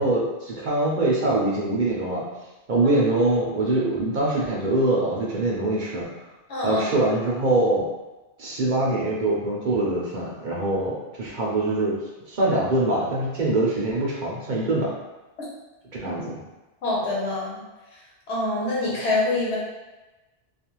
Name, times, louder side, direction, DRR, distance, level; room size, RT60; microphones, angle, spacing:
voice 1, 0.0-2.3 2.7-6.1 6.6-7.8 8.4-12.0 12.3-14.9 16.0-16.4, right 2 dB, 55° right, -5 dB, 0.6 m, -23 dB
voice 2, 6.5-6.8 16.8-17.6 18.3-19.6, left 2 dB, 80° left, -6 dB, 1.1 m, -25 dB
2.4 x 2.3 x 2.9 m, 1.1 s
omnidirectional pair, 1.1 m